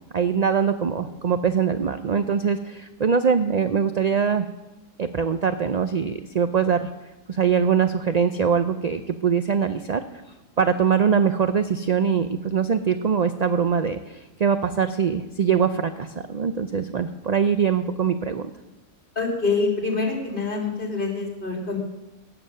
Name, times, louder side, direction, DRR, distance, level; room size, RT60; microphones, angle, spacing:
voice 1, 0.1-4.5 5.0-6.9 7.3-10.0 10.6-18.5, right 7 dB, 60° right, 9 dB, 0.4 m, -22 dB
voice 2, 19.1-21.8, left 4 dB, 40° left, 1 dB, 2.8 m, -25 dB
16.5 x 7.0 x 6.6 m, 1.0 s
omnidirectional pair, 1.4 m